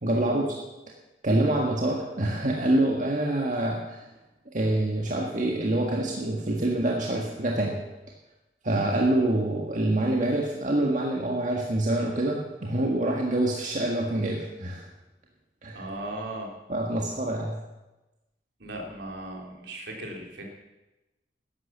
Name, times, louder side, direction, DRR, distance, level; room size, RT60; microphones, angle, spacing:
voice 1, 0.0-0.6 1.2-4.1 4.5-7.8 8.6-14.9 15.6-15.8 16.7-17.6, right 1 dB, 45° right, -1 dB, 1.7 m, -26 dB
voice 2, 15.7-16.5 18.6-20.4, right 1 dB, 70° right, 0 dB, 3.4 m, -37 dB
13.0 x 11.0 x 7.3 m, 1.0 s
head